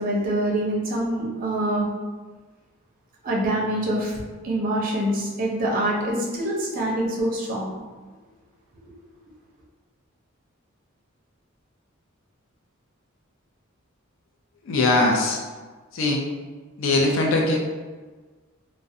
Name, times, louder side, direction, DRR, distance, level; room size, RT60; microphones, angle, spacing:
voice 1, 0.0-1.9 3.2-7.7 8.8-8.9, right 1 dB, 45° right, -3 dB, 0.5 m, -25 dB
voice 2, 14.6-15.4 15.9-16.2 16.8-17.6, left 2 dB, 70° left, 0 dB, 0.4 m, -21 dB
2.4 x 2.0 x 2.6 m, 1.3 s
head